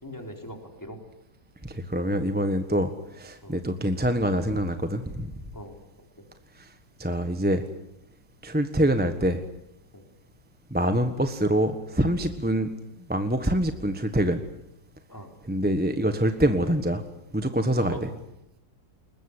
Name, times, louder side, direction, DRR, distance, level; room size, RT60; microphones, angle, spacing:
voice 1, 0.0-1.0 3.4-3.6 5.5-6.2 9.9-10.1 15.1-15.3 17.8-18.0, equal, 10° left, 3 dB, 3.9 m, -41 dB
voice 2, 1.6-5.3 6.6-6.7 7.0-7.7 8.4-9.4 10.7-12.7 13.1-14.4 15.5-17.0 17.3-18.0, right 1 dB, 5° right, 8 dB, 1.0 m, -25 dB
21.5 x 21.0 x 9.9 m, 0.83 s
omnidirectional pair, 2.1 m